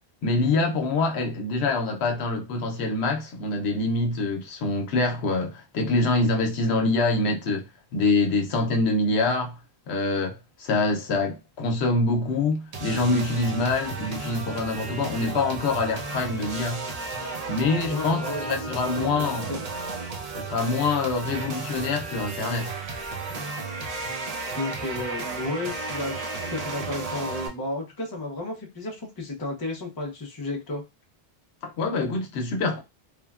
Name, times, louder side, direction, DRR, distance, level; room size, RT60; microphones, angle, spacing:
voice 1, 0.2-9.6 9.9-16.8 17.5-19.5 20.3-22.7 23.3-23.4 31.6-32.8, left 3 dB, 85° left, 0.9 m, -25 dB
sound 1, 12.7-27.5, right 3 dB, 45° right, 0.6 m, -34 dB
voice 2, 17.9-19.2 19.5-19.6 24.6-30.8, left 2 dB, 25° left, 0.6 m, -32 dB
sound 2, 18.2-18.9 20.2-27.1, right 4 dB, 85° right, 0.9 m, -42 dB
3.2 x 2.1 x 2.3 m
omnidirectional pair, 1.1 m